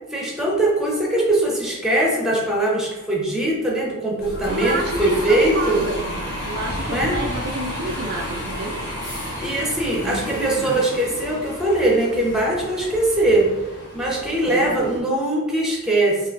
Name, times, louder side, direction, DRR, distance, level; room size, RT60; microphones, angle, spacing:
voice 1, 0.1-5.8 6.9-7.2 9.4-13.5 13.9-16.3, right 1 dB, ahead, -3 dB, 0.8 m, -21 dB
Bus, 4.2-15.0, equal, 45° left, 1.3 m, -32 dB
voice 2, 4.5-6.1 6.4-8.8 9.9-10.8 14.5-15.1, right 2 dB, 45° right, 1 dB, 0.3 m, -29 dB
5.0 x 2.6 x 2.5 m, 1.1 s
head